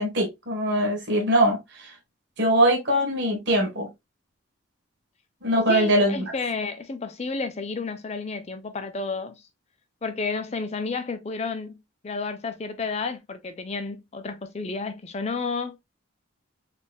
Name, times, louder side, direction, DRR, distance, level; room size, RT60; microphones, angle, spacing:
voice 1, 0.0-1.9 2.4-3.9 5.4-6.2, right 1 dB, 55° right, 1.7 m, -22 dB
voice 2, 5.7-9.4 10.0-15.8, left 4 dB, 30° left, 0.4 m, -31 dB
4.1 x 3.5 x 2.2 m
head